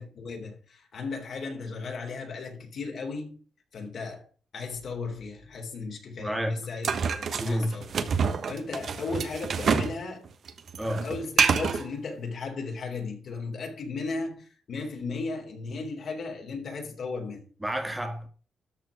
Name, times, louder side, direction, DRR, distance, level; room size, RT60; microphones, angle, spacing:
voice 1, 0.0-3.4 3.7-4.3 4.5-7.9 8.5-10.3 11.0-17.4, left 4 dB, 55° left, 3.5 m, -36 dB
voice 2, 6.2-6.7 7.4-7.7 10.8-11.1 17.6-18.3, equal, 10° right, 2.1 m, -29 dB
sound 1, 6.8-10.0 10.3-11.8, right 6 dB, 55° right, 1.2 m, -27 dB
13.0 x 4.6 x 7.1 m
wide cardioid pair, 150°, 0 cm